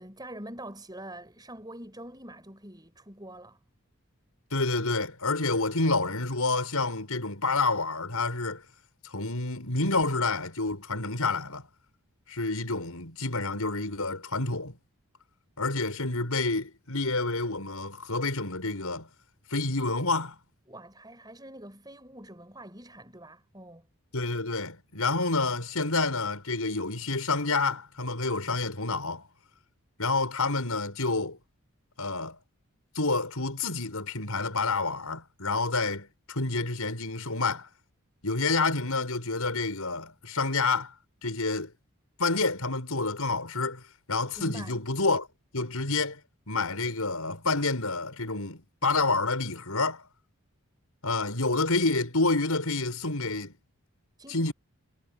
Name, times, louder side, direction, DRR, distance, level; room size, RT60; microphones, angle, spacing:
voice 1, 0.0-3.6 20.7-23.8 44.4-44.8 54.2-54.5, right 1 dB, 20° right, 5.9 m, -45 dB
voice 2, 4.5-8.6 9.1-11.7 12.3-14.8 15.6-19.1 19.5-20.3 24.1-29.3 30.0-31.4 32.0-32.4 32.9-37.7 38.2-40.9 41.2-41.7 42.2-43.8 44.1-45.3 45.5-46.2 46.5-50.0 51.0-53.5 54.3-54.5, left 3 dB, 80° left, 6.3 m, -28 dB
head